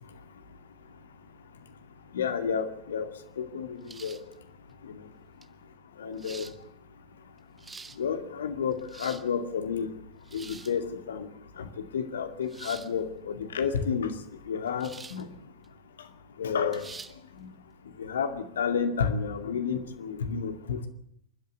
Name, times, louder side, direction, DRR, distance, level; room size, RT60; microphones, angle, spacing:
voice 1, 2.1-3.1 3.4-4.2 4.8-5.0 6.0-6.5 8.0-9.9 10.3-11.3 11.6-14.1 14.5-15.3 16.4-16.8 17.4-17.5 18.0-20.9, left 6 dB, 65° left, 8 dB, 2.3 m, -31 dB
sound 1, 3.9-4.3 5.4-5.5 6.2-6.6 7.4-8.0 8.7-9.3 10.2-10.8 12.5-12.9 14.8-15.2 15.6-15.7 16.7-17.1, right 4 dB, 15° right, 1.2 m, -45 dB
27.5 x 12.5 x 8.3 m, 0.72 s
figure-of-eight pair, 90°, 0 cm